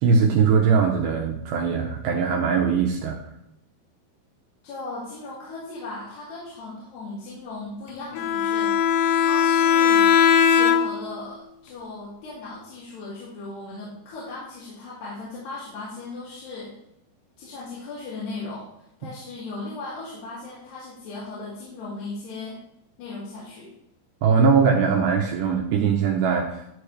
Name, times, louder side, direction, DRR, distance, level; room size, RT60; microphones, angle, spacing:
voice 1, 0.0-3.2 24.2-26.6, right 5 dB, 80° right, 1 dB, 2.6 m, -21 dB
voice 2, 4.6-8.9 9.2-10.1 10.5-16.7 17.4-18.7 19.0-22.6 23.0-23.7, left 3 dB, 60° left, -9 dB, 4.4 m, -37 dB
Bowed string instrument, 8.2-11.2, left 8 dB, 85° left, 3.3 m, -19 dB
12.5 x 6.9 x 3.3 m, 0.79 s
omnidirectional pair, 5.7 m